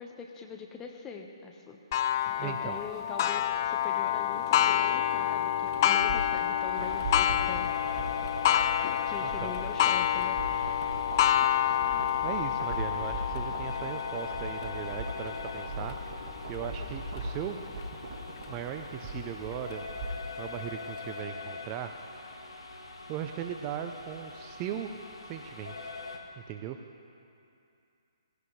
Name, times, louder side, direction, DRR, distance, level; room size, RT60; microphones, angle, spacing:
voice 1, 0.0-1.8 2.4-8.2 9.0-11.0 11.9-12.1, left 5 dB, 15° left, 2 dB, 1.2 m, -43 dB
Clock, 1.9-17.2 17.8-17.9 18.4-18.5 19.5-19.6, left 11 dB, 35° left, 0.4 m, -28 dB
voice 2, 2.4-2.8 9.2-9.6 12.2-16.0 16.5-17.6 18.5-19.8 20.4-21.9 23.1-25.0 25.2-25.9 26.4-26.8, right 9 dB, 25° right, 6 dB, 0.6 m, -38 dB
sound 1, 5.7-20.4 20.7-20.8, right 1 dB, 50° right, 2.5 m, -40 dB
sound 2, 6.7-26.2, left 4 dB, 70° left, 1.7 m, -43 dB
18.0 x 16.5 x 3.3 m, 2.6 s
figure-of-eight pair, 140°, 3 cm